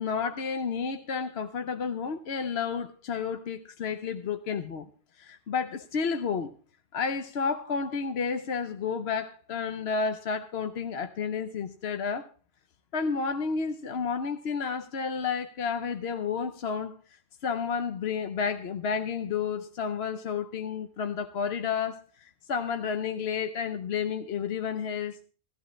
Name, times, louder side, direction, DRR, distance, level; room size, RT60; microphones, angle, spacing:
voice 1, 0.0-4.9 5.2-6.5 6.9-12.3 12.9-17.0 17.4-25.2, left 6 dB, 70° left, 1.0 m, -31 dB
17.5 x 13.5 x 3.2 m
omnidirectional pair, 1.1 m